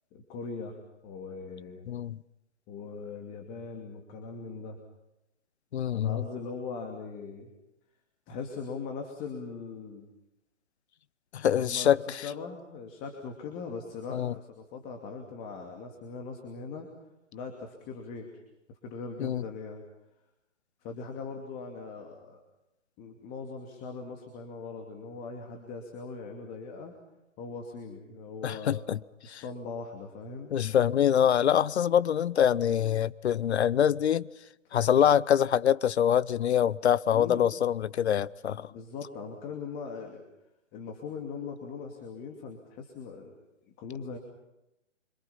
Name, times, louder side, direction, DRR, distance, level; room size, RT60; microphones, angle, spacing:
voice 1, 0.1-0.8 1.0-1.9 2.7-4.8 5.9-7.5 8.3-10.1 11.6-12.0 12.2-16.9 17.3-18.3 18.7-19.8 20.8-22.4 23.0-26.9 27.4-29.0 29.2-30.5 34.6-34.7 37.1-37.5 38.7-40.2 40.7-43.4 43.8-44.2, left 4 dB, 20° left, 2.6 m, -40 dB
voice 2, 1.9-2.2 5.7-6.2 11.3-12.3 14.1-14.3 19.2-19.4 28.4-29.0 29.3-29.4 30.5-34.3 34.7-38.7, left 9 dB, 60° left, 0.8 m, -25 dB
26.5 x 25.5 x 5.7 m
hypercardioid pair, 145°, 38 cm